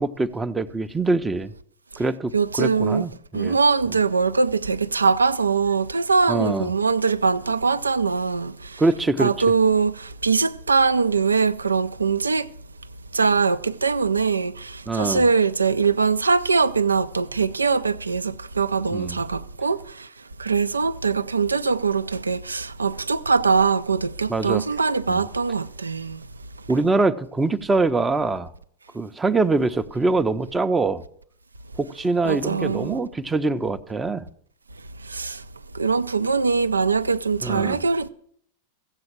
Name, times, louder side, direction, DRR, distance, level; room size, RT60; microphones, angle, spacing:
voice 1, 0.0-1.5 2.0-2.3 2.6-3.5 6.3-6.7 8.8-9.3 14.9-15.2 18.9-19.2 24.3-24.6 25.1-25.2 26.7-28.5 28.9-31.0 31.8-34.3 37.4-37.8, right 3 dB, 15° right, 0.6 m, -23 dB
voice 2, 2.3-3.0 3.3-8.8 9.2-12.5 13.1-20.1 20.4-26.3 32.2-33.0 35.0-35.4 35.7-38.1, right 5 dB, 75° right, 0.4 m, -22 dB
15.5 x 7.8 x 6.0 m
figure-of-eight pair, 90°, 0 cm